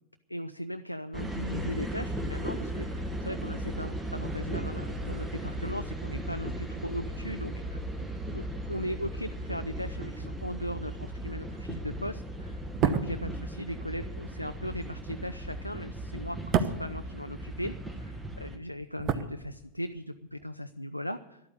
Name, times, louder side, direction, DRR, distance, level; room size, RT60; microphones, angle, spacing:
voice 1, 0.3-7.8 8.3-21.4, equal, 90° left, 8 dB, 0.4 m, -38 dB
sound 1, 1.1-18.6, right 1 dB, 15° right, 1.6 m, -37 dB
sound 2, 12.6-17.9 18.2-20.0 20.3-20.5, right 7 dB, 35° right, 0.9 m, -32 dB
11.5 x 8.6 x 9.6 m, 0.93 s
figure-of-eight pair, 90°, 0 cm